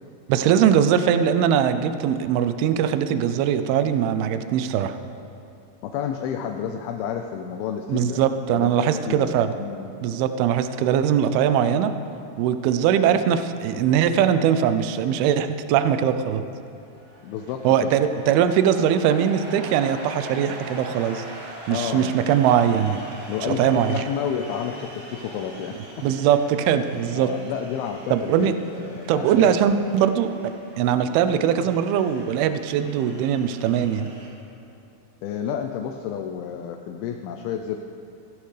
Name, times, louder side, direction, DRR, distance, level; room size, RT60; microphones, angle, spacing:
voice 1, 0.3-5.0 7.9-9.5 10.0-11.9 12.4-16.4 17.6-21.2 21.7-23.0 23.4-24.0 26.0-27.3 28.1-28.5 29.1-30.3 30.8-34.1, right 9 dB, 80° right, 10 dB, 2.4 m, -21 dB
voice 2, 5.8-8.2 8.6-9.9 17.2-17.9 21.7-22.2 23.3-25.7 27.2-29.5 35.2-37.8, left 8 dB, 80° left, 4 dB, 2.4 m, -30 dB
sound 1, 16.7-34.3, right 1 dB, 35° right, 1.6 m, -42 dB
16.0 x 14.0 x 3.3 m, 2.7 s
omnidirectional pair, 4.6 m